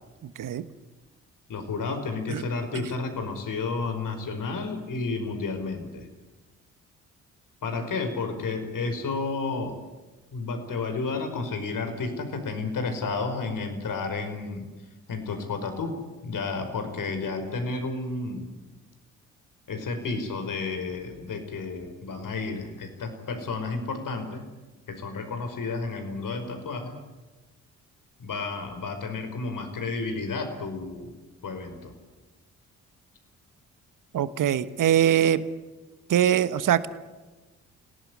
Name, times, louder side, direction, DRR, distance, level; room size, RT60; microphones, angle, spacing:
voice 1, 1.5-6.1 7.6-9.8 10.3-14.7 15.1-16.0 16.2-18.5 19.7-24.4 24.9-27.0 28.2-31.1 31.4-31.9, left 3 dB, 55° left, 7 dB, 5.2 m, -31 dB
voice 2, 34.1-35.4 36.1-36.9, right 10 dB, 55° right, 14 dB, 1.3 m, -22 dB
26.5 x 18.0 x 10.0 m, 1.2 s
hypercardioid pair, 45°, 39 cm